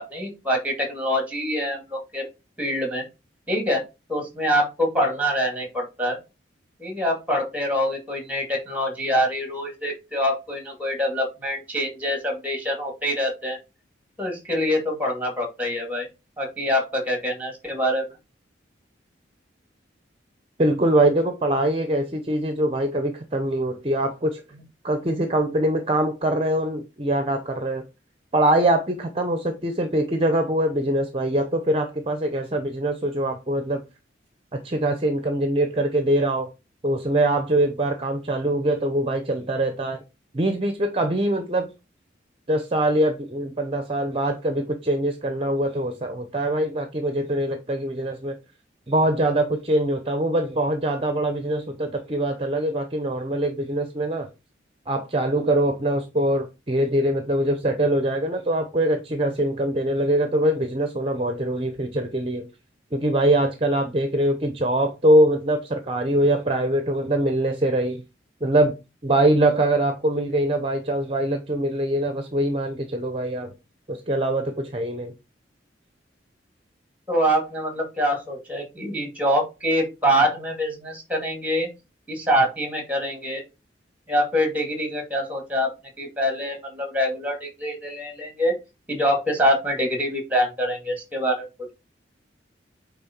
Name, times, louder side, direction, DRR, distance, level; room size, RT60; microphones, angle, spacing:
voice 1, 0.0-2.2 2.6-3.0 3.5-6.2 6.8-13.6 14.2-16.1 16.4-18.1 77.1-81.7 82.1-83.4 84.1-85.7 86.0-88.5 88.9-91.7, equal, 10° right, 2.3 m, -25 dB
voice 2, 20.6-24.4 24.8-27.8 28.3-33.8 34.5-36.5 36.8-40.0 40.3-41.7 42.5-48.4 48.9-54.3 54.9-62.5 62.9-68.0 68.4-68.7 69.0-73.5 73.9-75.1, right 1 dB, 30° right, 0.7 m, -23 dB
8.6 x 3.5 x 4.4 m
head